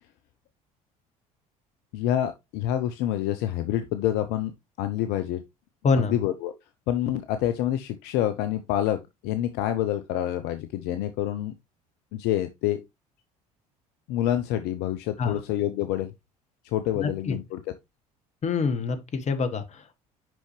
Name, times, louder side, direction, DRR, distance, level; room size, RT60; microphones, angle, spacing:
voice 1, 1.9-4.5 4.8-5.4 6.1-6.5 6.9-9.0 9.2-11.5 12.1-12.8 14.1-16.1 16.7-17.6, left 12 dB, 65° left, 0.6 m, -27 dB
voice 2, 5.8-6.2 15.2-15.4 17.0-17.4 18.4-19.9, left 4 dB, 40° left, 1.3 m, -26 dB
6.1 x 5.6 x 3.1 m
hypercardioid pair, 65°, 19 cm